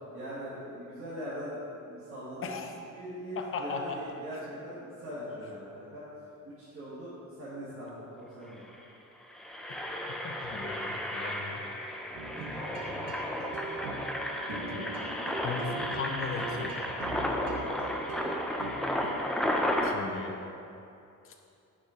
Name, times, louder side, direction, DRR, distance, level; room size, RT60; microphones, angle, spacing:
voice 1, 0.1-2.5 2.9-6.0 6.4-8.6 12.5-12.9, equal, 40° right, -10 dB, 1.5 m, -41 dB
voice 2, 3.4-4.1 9.7-9.8 10.2-11.7 12.5-13.2 14.5-15.0 15.4-16.8 19.8-20.5 21.2-21.3, left 5 dB, 45° left, 3 dB, 0.7 m, -38 dB
Engine, 8.2-8.3 8.5-8.7 9.2-19.9, left 1 dB, ahead, 0.3 m, -33 dB
sound 1, 12.1-19.4, right 3 dB, 80° right, 0.9 m, -41 dB
6.8 x 5.1 x 4.9 m, 2.7 s
cardioid pair, 175°, 32 cm